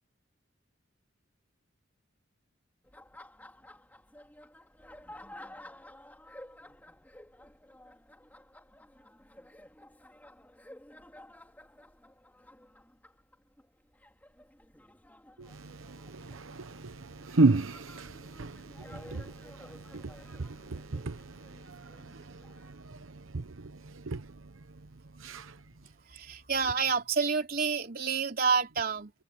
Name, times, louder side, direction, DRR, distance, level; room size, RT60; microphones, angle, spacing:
Laughter, 2.8-22.7, left 1 dB, 10° left, 4.3 m, -53 dB
voice 1, 15.4-24.3 25.2-25.6, right 3 dB, 85° right, 0.9 m, -33 dB
voice 2, 26.0-29.1, right 5 dB, 45° right, 3.4 m, -29 dB
head